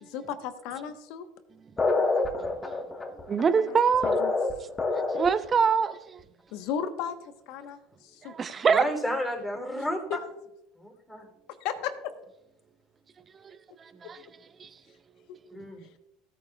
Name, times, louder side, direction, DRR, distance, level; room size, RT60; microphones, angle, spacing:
voice 1, 0.0-1.3 3.5-3.8 4.0-4.6 6.5-8.3 11.5-12.1 15.3-15.4 15.8-15.9, left 8 dB, 65° left, 1.2 m, -36 dB
sound 1, 1.8-5.5, left 3 dB, 20° left, 1.4 m, -27 dB
voice 2, 3.3-4.2 5.1-6.2 8.3-8.8 13.4-14.2 14.6-14.7, right 6 dB, 30° right, 0.7 m, -25 dB
voice 3, 8.7-10.0 10.7-11.3 15.5-15.8, equal, 5° left, 3.3 m, -31 dB
17.0 x 8.9 x 2.4 m
supercardioid pair, 95°, 0 cm